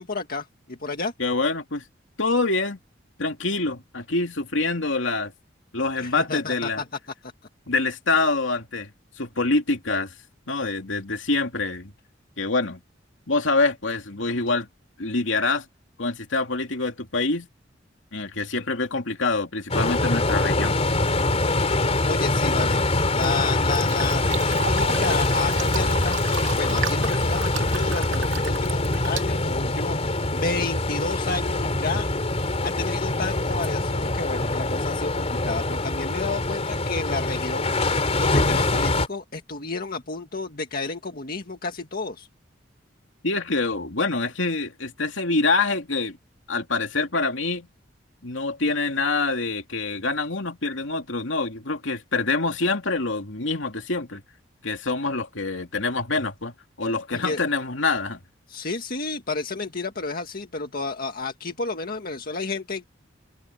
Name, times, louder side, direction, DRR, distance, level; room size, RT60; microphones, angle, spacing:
voice 1, 0.0-1.1 6.0-6.8 7.2-7.3 22.1-22.8 23.1-32.1 32.6-42.3 57.1-57.4 58.5-62.9, left 3 dB, 50° left, 1.8 m, -31 dB
voice 2, 1.2-1.9 2.2-2.8 3.2-5.3 5.7-6.8 7.7-8.9 9.2-10.1 10.5-11.9 12.4-12.8 13.3-14.7 15.0-15.7 16.0-17.5 18.1-20.8 43.2-46.2 46.5-47.7 48.2-54.2 54.6-58.2, left 3 dB, 80° left, 2.7 m, -25 dB
sound 1, 19.7-39.1, left 2 dB, 35° left, 3.4 m, -24 dB
Fill (with liquid), 23.1-30.0, right 5 dB, 90° right, 2.4 m, -34 dB
head